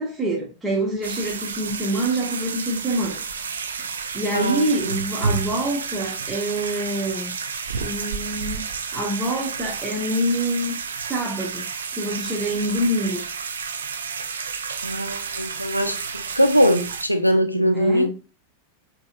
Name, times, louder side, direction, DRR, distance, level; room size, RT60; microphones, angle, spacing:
voice 1, 0.0-3.2 4.1-7.3 7.8-8.6 8.9-11.6 11.9-13.2 17.7-18.1, right 1 dB, 10° right, 1.1 m, -26 dB
sound 1, 1.0-17.0, right 5 dB, 70° right, 0.4 m, -31 dB
voice 2, 4.3-4.7 14.8-18.1, equal, 90° left, 0.5 m, -21 dB
5.4 x 2.9 x 2.4 m
figure-of-eight pair, 90°, 0 cm